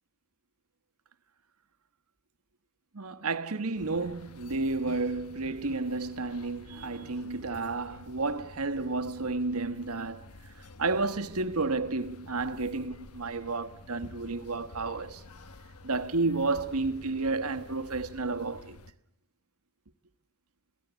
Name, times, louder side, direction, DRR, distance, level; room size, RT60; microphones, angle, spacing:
voice 1, 2.9-10.2 10.8-15.2 15.8-18.8, right 3 dB, 80° right, 1.3 m, -31 dB
sound 1, 3.7-18.9, left 2 dB, 90° left, 1.2 m, -50 dB
27.5 x 18.0 x 8.2 m
head